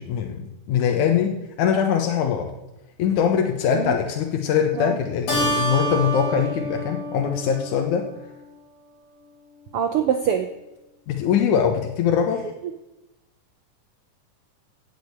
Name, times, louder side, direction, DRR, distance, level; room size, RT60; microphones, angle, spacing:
voice 1, 0.0-2.5 3.0-8.1 11.1-12.5, left 8 dB, 75° left, 3 dB, 2.5 m, -22 dB
Keyboard (musical), 5.3-8.2, right 1 dB, 55° left, 5.7 m, -27 dB
voice 2, 9.7-10.5 12.4-12.7, right 8 dB, 80° right, 7 dB, 1.2 m, -24 dB
16.5 x 6.5 x 8.6 m, 0.97 s
omnidirectional pair, 3.6 m